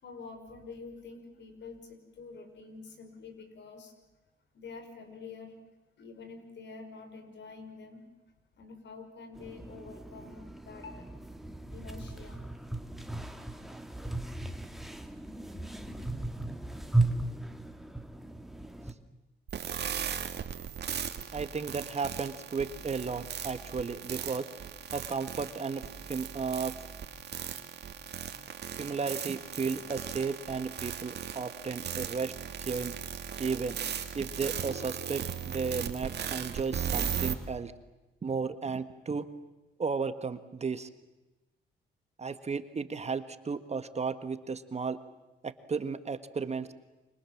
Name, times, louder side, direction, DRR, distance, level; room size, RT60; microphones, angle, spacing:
voice 1, 0.0-3.9 4.5-5.6 6.0-8.1 8.6-11.1 11.7-12.4, left 4 dB, 65° left, 7 dB, 5.6 m, -47 dB
sound 1, 9.4-18.9, right 2 dB, ahead, 2.4 m, -36 dB
sound 2, 19.5-37.3, right 8 dB, 55° right, 2.5 m, -37 dB
voice 2, 21.3-24.5 24.9-26.7 28.8-32.3 32.6-33.0 33.4-33.8 34.1-37.7 38.2-39.2 39.8-40.9 42.2-45.0 45.4-46.7, right 5 dB, 35° right, 11 dB, 1.6 m, -34 dB
29.0 x 26.0 x 7.3 m, 1.1 s
cardioid pair, 90°, 20 cm